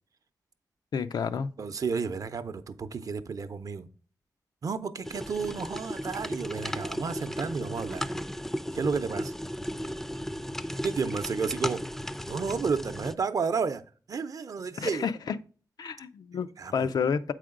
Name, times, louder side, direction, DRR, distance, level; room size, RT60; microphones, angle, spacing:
voice 1, 0.9-1.5 14.8-15.4 15.8-17.3, left 6 dB, 85° left, 0.5 m, -30 dB
voice 2, 1.6-3.9 4.6-8.1 8.7-9.3 10.8-11.8 12.3-13.8 14.1-15.1 16.6-16.9, right 5 dB, 60° right, 0.6 m, -31 dB
sound 1, 5.0-13.1, equal, 5° left, 0.4 m, -35 dB
7.7 x 4.9 x 3.7 m
wide cardioid pair, 100°, 7 cm